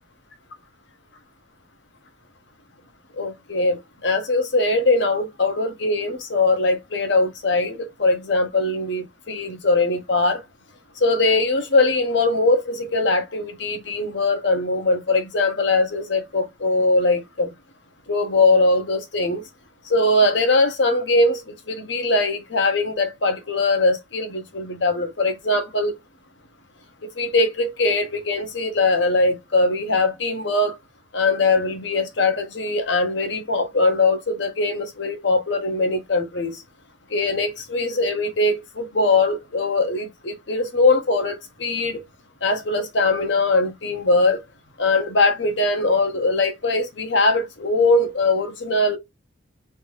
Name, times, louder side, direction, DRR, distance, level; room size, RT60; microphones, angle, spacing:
voice 1, 3.2-10.4 11.0-17.5 18.1-19.4 19.9-26.0 27.2-30.8 31.1-36.6 37.1-42.0 42.4-44.4 44.8-49.0, left 2 dB, 60° left, 1.0 m, -21 dB
3.4 x 2.7 x 3.1 m
head